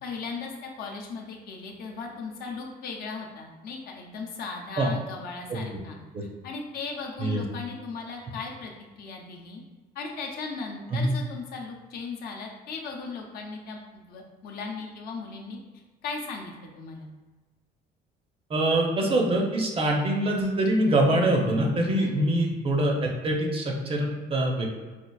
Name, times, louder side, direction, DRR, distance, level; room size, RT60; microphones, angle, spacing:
voice 1, 0.0-6.0 6.4-9.6 9.9-15.6 16.0-17.1 22.0-22.2, left 4 dB, 65° left, 0 dB, 0.6 m, -37 dB
voice 2, 18.5-24.8, right 1 dB, 35° right, 1 dB, 0.6 m, -24 dB
4.4 x 2.4 x 2.3 m, 1.3 s
cardioid pair, 110°, 17 cm